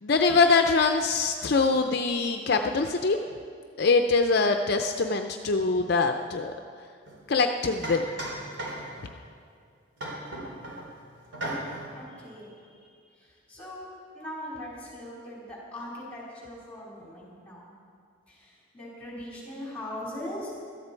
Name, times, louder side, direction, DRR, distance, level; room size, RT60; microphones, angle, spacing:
voice 1, 0.0-3.2 3.8-6.5 7.3-8.0, left 4 dB, 55° left, 5 dB, 0.5 m, -23 dB
sound 1, 7.1-7.2 7.8-9.1 10.0-10.9 11.3-11.9, right 1 dB, 70° right, 3.5 m, -35 dB
voice 2, 11.9-17.7 18.3-20.5, left 1 dB, 5° left, -6 dB, 4.3 m, -41 dB
16.5 x 13.0 x 4.5 m, 2.3 s
head